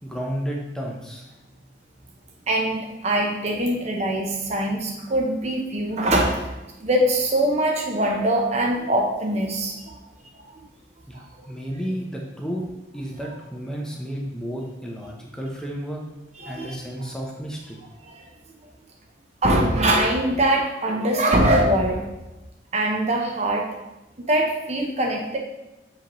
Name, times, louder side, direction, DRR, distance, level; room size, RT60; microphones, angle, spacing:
voice 1, 0.0-1.3 11.1-12.6 12.9-16.0 16.5-17.8, equal, 5° left, -1 dB, 0.6 m, -32 dB
voice 2, 2.5-6.5 6.8-9.9 10.3-10.5 11.1-11.2 16.4-16.8 18.0-18.2 19.4-22.1 22.7-23.7 24.2-25.4, right 1 dB, 35° right, 0 dB, 0.7 m, -22 dB
6.8 x 5.0 x 3.0 m, 1.0 s
head